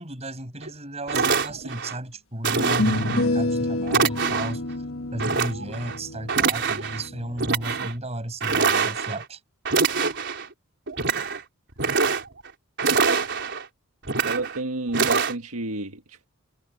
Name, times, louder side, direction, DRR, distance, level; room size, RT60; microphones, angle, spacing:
voice 1, 0.0-4.6 5.1-9.4, right 1 dB, 30° right, 6.4 m, -33 dB
sound 1, 0.6-0.7 1.1-1.9 2.4-3.2 3.9-4.6 5.2-6.0 6.3-7.0 7.4-7.9 8.4-9.2 9.6-10.5 10.9-11.4 11.7-12.5 12.8-13.6 14.0-14.6 14.9-15.3, right 5 dB, 55° right, 4.4 m, -24 dB
sound 2, 1.5-1.6 2.6-7.8, left 2 dB, 65° left, 1.4 m, -29 dB
voice 2, 14.2-16.3, right 2 dB, 80° right, 1.7 m, -30 dB
head